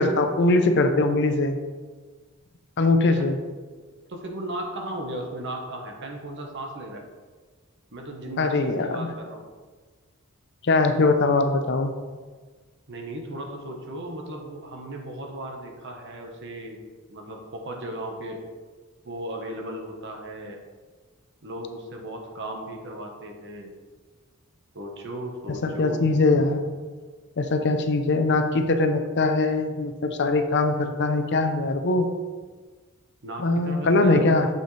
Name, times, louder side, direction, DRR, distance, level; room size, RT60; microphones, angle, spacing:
voice 1, 0.0-1.6 2.8-3.4 8.4-9.1 10.6-11.9 25.6-26.7 27.4-32.1 33.4-34.5, left 2 dB, 55° left, 7 dB, 0.6 m, -21 dB
voice 2, 4.1-7.1 7.9-9.5 12.9-16.8 17.1-18.4 19.0-20.6 21.4-23.7 24.7-26.1 33.2-34.3, right 1 dB, 55° right, 2 dB, 1.1 m, -36 dB
7.1 x 6.5 x 3.2 m, 1.4 s
head